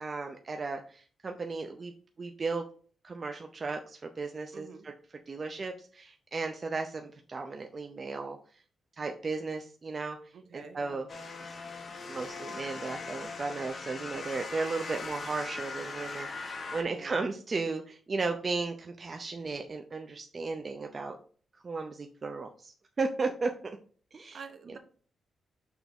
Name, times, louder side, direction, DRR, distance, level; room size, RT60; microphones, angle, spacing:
voice 1, 0.0-1.9 2.2-2.6 3.0-4.9 5.3-8.4 9.0-11.1 11.4-11.5 12.1-21.2 21.6-23.5 24.1-24.4 24.7-24.8, right 3 dB, 30° right, 4 dB, 0.6 m, -35 dB
voice 2, 4.5-4.9 10.3-11.0 16.9-17.3 24.3-24.8, right 5 dB, 55° right, 7 dB, 1.0 m, -47 dB
sound 1, 11.1-16.8, left 4 dB, 35° left, 1.1 m, -40 dB
6.1 x 3.5 x 5.3 m, 0.43 s
cardioid pair, 135°, 0 cm